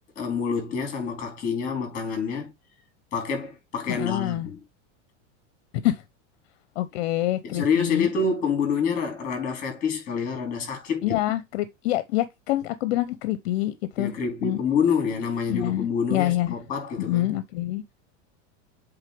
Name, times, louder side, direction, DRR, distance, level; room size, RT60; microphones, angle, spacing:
voice 1, 0.2-2.5 3.1-4.6 7.4-11.2 14.0-17.3, left 5 dB, 20° left, 4.0 m, -27 dB
voice 2, 3.9-4.5 5.8-6.0 6.8-8.1 11.0-14.1 14.4-14.6 15.5-16.5 17.0-17.8, left 15 dB, 55° left, 0.8 m, -26 dB
8.1 x 3.6 x 3.4 m
supercardioid pair, 165°, 36 cm